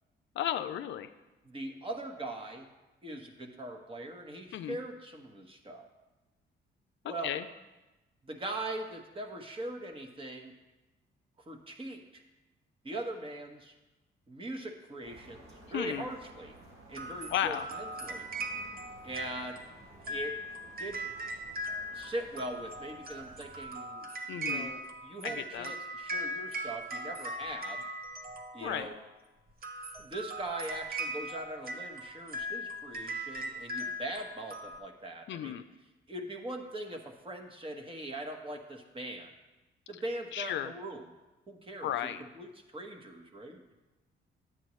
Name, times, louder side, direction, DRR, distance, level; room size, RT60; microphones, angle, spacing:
voice 1, 0.4-1.1 4.5-4.8 7.2-7.4 15.7-16.0 17.3-17.7 24.3-24.7 25.2-25.7 28.6-28.9 35.3-35.6 40.3-40.7 41.8-42.2, left 11 dB, 70° left, 10 dB, 0.5 m, -34 dB
voice 2, 1.4-2.7 3.0-5.9 7.0-7.4 8.2-10.5 11.4-12.2 12.8-13.7 14.3-16.5 16.9-18.3 19.0-19.7 20.0-20.4 20.8-21.1 21.9-27.8 28.5-29.0 30.0-35.6 36.1-39.3 39.9-41.1 41.5-43.7, right 1 dB, 25° right, 3 dB, 1.2 m, -41 dB
sound 1, 15.0-23.7, right 2 dB, 90° right, 2.1 m, -55 dB
sound 2, 16.9-28.9 29.5-34.8, right 1 dB, 50° right, 1.0 m, -39 dB
10.0 x 8.5 x 3.1 m, 1.1 s
cardioid pair, 90°, 20 cm